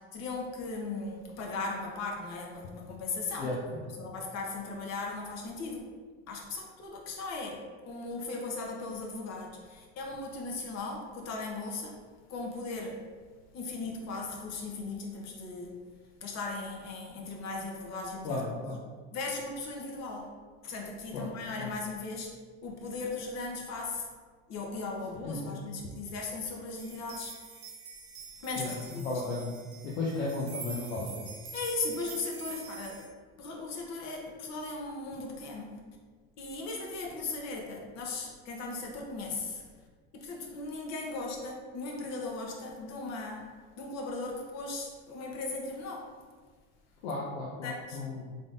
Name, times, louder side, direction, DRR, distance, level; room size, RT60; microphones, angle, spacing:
voice 1, 0.1-5.8 6.3-7.6 7.8-12.0 12.3-13.0 13.5-15.8 16.2-18.6 19.1-20.3 20.6-22.3 22.6-24.1 24.5-27.3 28.4-29.0 31.5-33.0 33.4-35.8 36.4-39.6 40.1-46.1 47.6-48.0, left 3 dB, 50° left, 0 dB, 1.0 m, -37 dB
voice 2, 18.2-18.8 21.1-21.3 21.6-21.7 25.2-25.6 28.6-29.5 29.8-31.3 47.0-48.4, left 2 dB, 90° left, -4 dB, 0.6 m, -35 dB
sound 1, 26.8-33.0, right 5 dB, 75° right, 1.0 m, -45 dB
3.7 x 3.6 x 2.6 m, 1.5 s
supercardioid pair, 90°, 33 cm